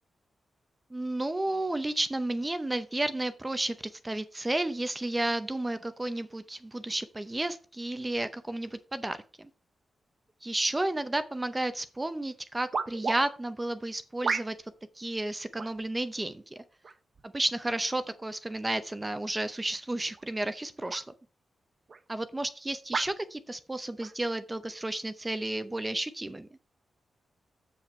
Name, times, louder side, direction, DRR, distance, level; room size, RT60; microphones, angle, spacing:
voice 1, 0.9-9.5 10.4-14.6 15.0-16.6 17.2-21.0 22.1-26.5, right 1 dB, 15° right, 11 dB, 0.6 m, -32 dB
sound 1, 11.7-11.8 12.7-13.2 14.2-14.8 15.6-15.8 16.8-17.2 18.0-18.2 20.1-20.3 20.9-21.1 21.9-22.0 22.9-23.2 24.0-24.1, right 4 dB, 45° right, 0.9 m, -33 dB
7.8 x 7.5 x 4.4 m, 0.37 s
wide cardioid pair, 145°, 0 cm